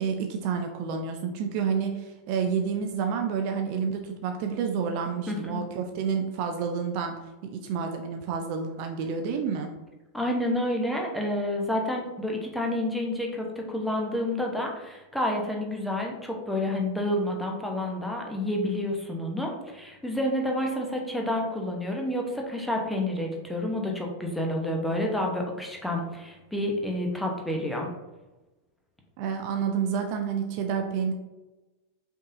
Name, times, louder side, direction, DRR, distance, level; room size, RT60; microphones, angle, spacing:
voice 1, 0.0-7.1 7.5-9.7 29.2-31.1, right 6 dB, 45° right, 4 dB, 0.4 m, -29 dB
voice 2, 5.3-5.6 10.1-27.9, left 1 dB, 5° left, 0 dB, 0.8 m, -29 dB
5.2 x 3.6 x 2.6 m, 1.1 s
figure-of-eight pair, 90°, 0 cm